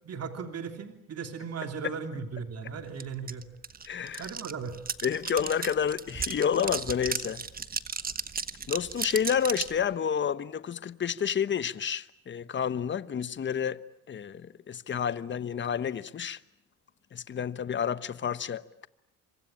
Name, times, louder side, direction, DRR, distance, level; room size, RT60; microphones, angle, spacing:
voice 1, 0.0-3.4 4.2-4.8, right 6 dB, 45° right, 3.1 m, -37 dB
sound 1, 3.0-3.1 3.3-9.8, right 5 dB, 25° right, 1.3 m, -34 dB
voice 2, 3.8-4.3 5.0-7.4 8.7-13.8 14.1-16.4 17.1-18.9, left 8 dB, 35° left, 1.1 m, -30 dB
26.5 x 25.0 x 8.8 m
cardioid pair, 100°, 34 cm